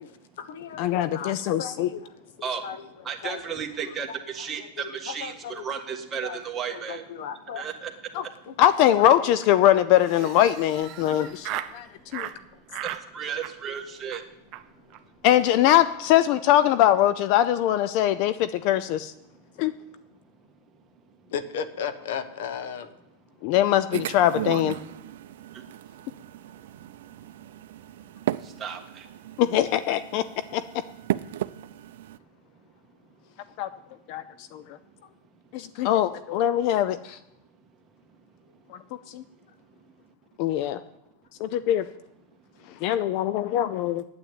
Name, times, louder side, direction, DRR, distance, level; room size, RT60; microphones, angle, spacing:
voice 1, 0.0-2.1 2.6-2.9 3.2-3.4 4.1-6.4 6.7-7.7 8.1-9.4 21.3-22.9 28.7-28.8 35.0-35.1 35.8-35.9 40.6-40.7 43.4-43.5, left 7 dB, 75° left, 11 dB, 1.0 m, -37 dB
voice 2, 0.8-1.9 8.1-8.2 8.6-11.9 12.1-12.3 15.2-19.1 19.6-19.7 23.4-24.8 29.4-30.2 30.5-30.6 33.6-33.7 34.1-34.6 35.5-37.2 39.1-39.2 40.4-40.8 41.4-41.9 42.8-44.0, left 12 dB, 50° left, 14 dB, 0.5 m, -22 dB
voice 3, 3.0-7.0 7.5-7.9 12.4-12.5 12.8-14.2 25.5-25.6 28.4-29.1, right 7 dB, 20° right, 3 dB, 1.6 m, -34 dB
Laughter, 10.0-11.8 12.1-12.4 12.7-13.0 13.4-13.8 14.1-14.2 14.5-14.6 14.9-15.0 15.2-15.4 15.7-16.0, right 13 dB, 40° right, 0.7 m, -37 dB
sound 1, 23.9-32.2, right 13 dB, 75° right, 0.5 m, -35 dB
9.2 x 8.5 x 9.0 m, 0.86 s
supercardioid pair, 140°, 0 cm